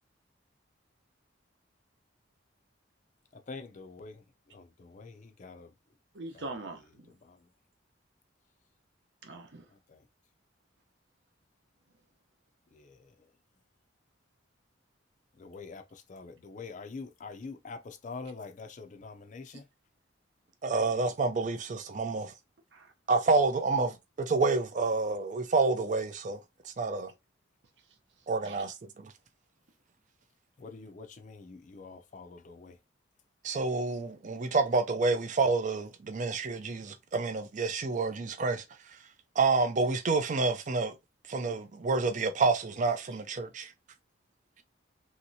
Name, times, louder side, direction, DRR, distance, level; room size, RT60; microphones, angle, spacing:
voice 1, 3.3-4.1 4.5-5.7 6.3-6.5 7.2-7.5 9.7-10.1 12.7-13.3 15.3-19.7 30.6-32.8, left 4 dB, 40° left, 0.4 m, -45 dB
voice 2, 6.1-7.1 9.2-9.7 19.5-19.6 22.7-22.9 28.4-28.6, right 2 dB, 65° right, 0.8 m, -42 dB
voice 3, 20.6-22.3 23.1-26.4 26.6-27.1 28.3-29.1 33.4-38.6 39.4-41.0 41.3-43.7, right 3 dB, 40° right, 0.4 m, -28 dB
3.1 x 2.8 x 2.6 m
head